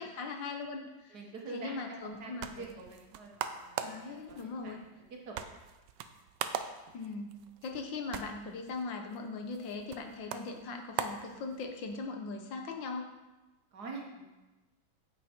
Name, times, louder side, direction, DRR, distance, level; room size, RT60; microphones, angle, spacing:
voice 1, 0.0-1.2 1.5-2.7 3.8-4.8 6.9-7.3 7.6-13.1, left 4 dB, 70° left, 4 dB, 1.7 m, -40 dB
voice 2, 1.1-4.8 5.3-5.4 13.7-14.3, right 3 dB, 55° right, 0 dB, 1.7 m, -46 dB
sound 1, 2.0-12.0, right 8 dB, 70° right, 1.2 m, -42 dB
9.0 x 7.7 x 4.4 m, 1.1 s
omnidirectional pair, 2.1 m